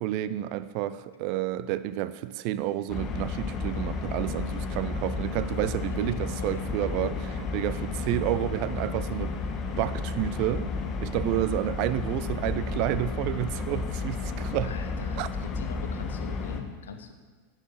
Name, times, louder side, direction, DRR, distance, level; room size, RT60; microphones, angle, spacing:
voice 1, 0.0-7.1 7.5-10.7 11.0-14.7 15.2-15.3, right 14 dB, 45° right, 14 dB, 0.6 m, -30 dB
sound 1, 2.9-16.6, left 4 dB, 30° left, 1.3 m, -32 dB
voice 2, 5.9-7.2 14.6-17.1, left 5 dB, 65° left, 7 dB, 1.2 m, -41 dB
10.0 x 9.1 x 7.5 m, 1.5 s
figure-of-eight pair, 90°, 0 cm